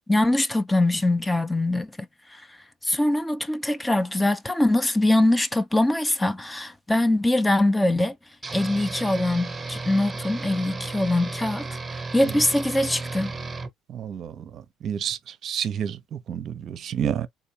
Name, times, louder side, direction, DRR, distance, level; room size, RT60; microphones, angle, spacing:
voice 1, 0.1-2.6 2.8-8.2 8.5-13.3, left 1 dB, 10° left, 0.5 m, -23 dB
sound 1, 8.4-13.7, right 3 dB, 20° right, 0.9 m, -34 dB
voice 2, 13.9-14.4 14.8-16.0 16.3-17.3, right 9 dB, 55° right, 0.5 m, -29 dB
3.8 x 2.7 x 2.7 m
hypercardioid pair, 70°, 0 cm